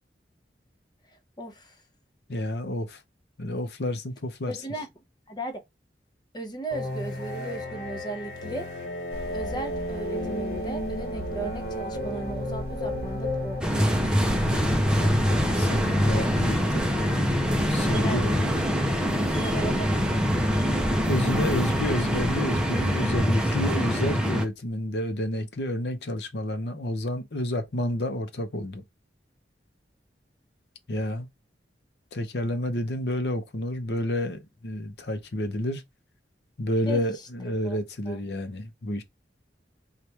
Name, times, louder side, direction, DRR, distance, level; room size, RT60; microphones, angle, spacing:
voice 1, 1.4-1.8 4.5-4.9 5.3-5.6 6.3-8.7 9.3-14.0 16.9-17.1 17.5-17.6 17.9-18.2 19.3-20.2 36.9-37.1 37.6-37.8 38.1-38.2, right 2 dB, 25° left, 0.8 m, -36 dB
voice 2, 2.3-3.0 3.4-4.5 14.4-14.6 14.9-16.8 17.7-18.6 21.1-28.8 30.9-31.3 32.1-35.8 36.6-39.0, left 1 dB, 65° left, 0.8 m, -30 dB
sound 1, 6.7-13.6, left 1 dB, 85° left, 1.3 m, -33 dB
sound 2, 9.1-23.2, equal, 60° right, 0.8 m, -39 dB
sound 3, 13.6-24.5, equal, 5° right, 0.6 m, -24 dB
4.4 x 2.5 x 3.3 m
head